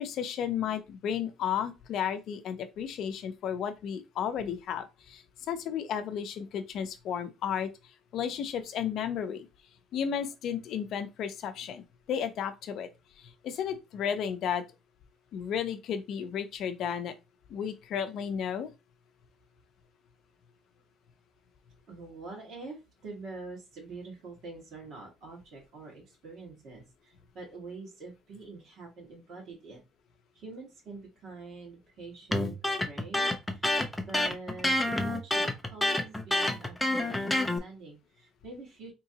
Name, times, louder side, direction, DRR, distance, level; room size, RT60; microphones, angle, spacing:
voice 1, 0.0-7.7 8.1-9.5 9.9-12.9 13.2-14.6 15.3-17.1 17.5-18.7, left 8 dB, 55° left, 0.6 m, -33 dB
voice 2, 21.9-29.8 30.3-33.8 34.0-38.9, right 3 dB, 50° right, 1.5 m, -45 dB
Electric guitar, 32.3-37.6, left 1 dB, 5° left, 0.4 m, -28 dB
3.7 x 3.0 x 2.8 m
cardioid pair, 165°, 0 cm